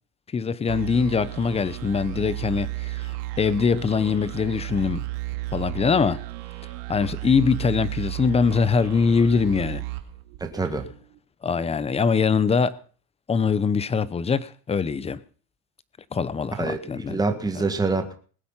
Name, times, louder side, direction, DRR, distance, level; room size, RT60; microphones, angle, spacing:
voice 1, 0.3-5.1 5.5-6.2 6.9-9.8 11.4-12.8 13.3-15.2 16.1-17.2, left 5 dB, 15° left, 0.7 m, -23 dB
sound 1, 0.7-11.0, right 18 dB, 75° right, 2.5 m, -34 dB
voice 2, 10.4-10.9 16.6-18.1, right 3 dB, 10° right, 1.8 m, -26 dB
20.5 x 8.4 x 5.7 m
supercardioid pair, 135°, 46 cm